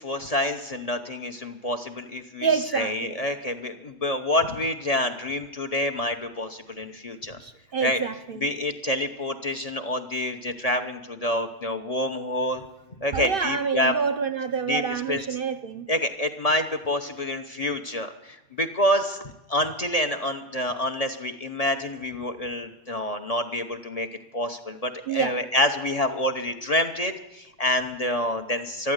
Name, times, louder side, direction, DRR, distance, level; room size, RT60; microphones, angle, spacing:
voice 1, 0.0-7.4 7.8-8.0 8.4-12.6 13.0-13.9 14.7-15.2 15.9-24.1 24.3-28.9, left 1 dB, 35° left, 0.9 m, -27 dB
voice 2, 2.4-3.2 7.4-8.5 13.1-15.9 25.1-25.4, right 6 dB, 55° right, 0.8 m, -27 dB
13.0 x 12.0 x 8.1 m
omnidirectional pair, 1.3 m